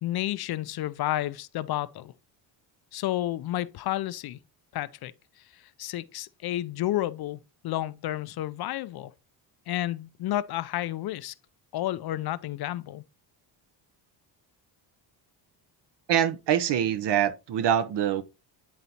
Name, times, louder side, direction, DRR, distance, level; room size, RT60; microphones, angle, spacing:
voice 1, 0.0-2.1 2.9-4.4 4.7-5.1 5.5-9.1 9.7-11.3 11.7-13.0, left 14 dB, 55° left, 0.5 m, -31 dB
voice 2, 16.1-18.2, right 10 dB, 60° right, 0.8 m, -24 dB
9.5 x 4.0 x 2.8 m
cardioid pair, 100°, 48 cm